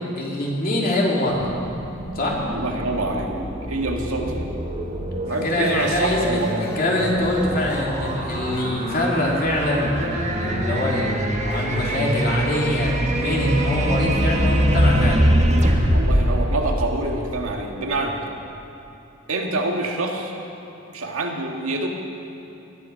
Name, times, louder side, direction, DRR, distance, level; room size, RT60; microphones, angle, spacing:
voice 1, 0.1-1.5 2.1-2.4 5.3-15.2, left 1 dB, 45° left, -3 dB, 3.0 m, -24 dB
sound 1, 1.3-17.5, equal, 35° right, 1.6 m, -24 dB
voice 2, 2.5-4.5 5.3-6.7 15.9-18.3 19.3-20.3 20.9-21.9, right 2 dB, 85° right, 1 dB, 1.9 m, -26 dB
sound 2, 5.3-12.4, left 2 dB, 15° left, 1.9 m, -39 dB
20.5 x 11.5 x 5.8 m, 3.0 s
head